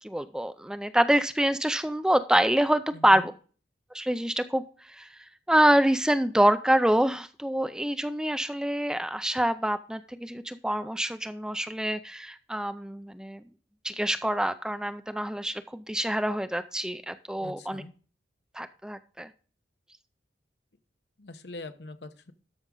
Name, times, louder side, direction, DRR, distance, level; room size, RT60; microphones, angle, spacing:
voice 1, 0.0-3.3 3.9-4.6 4.9-13.4 13.8-17.8 18.5-19.3, right 1 dB, 5° right, 11 dB, 0.4 m, -26 dB
voice 2, 2.9-3.3 17.4-17.9 21.2-22.3, left 2 dB, 65° left, 10 dB, 1.0 m, -43 dB
13.0 x 6.1 x 3.8 m, 0.38 s
head